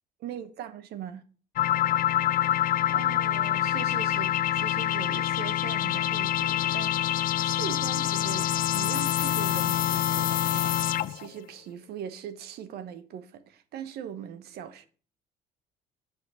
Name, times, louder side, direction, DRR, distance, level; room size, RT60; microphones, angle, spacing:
voice 1, 0.2-1.2 2.9-14.9, right 9 dB, 75° right, 0.9 m, -41 dB
sound 1, 1.6-11.3, left 12 dB, 55° left, 0.4 m, -26 dB
7.0 x 5.1 x 5.5 m
cardioid pair, 110°, 17 cm